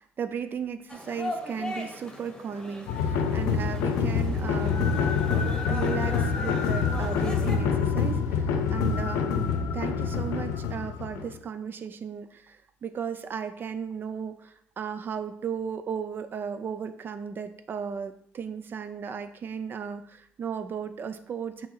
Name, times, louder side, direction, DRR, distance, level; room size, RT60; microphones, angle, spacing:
voice 1, 0.0-4.9 5.7-21.7, right 7 dB, 40° right, 9 dB, 0.5 m, -35 dB
sound 1, 0.9-7.6, left 1 dB, 15° left, 1.1 m, -39 dB
sound 2, 2.9-11.4, left 6 dB, 80° left, 0.7 m, -26 dB
6.1 x 3.1 x 5.6 m, 0.70 s
cardioid pair, 90°, 5 cm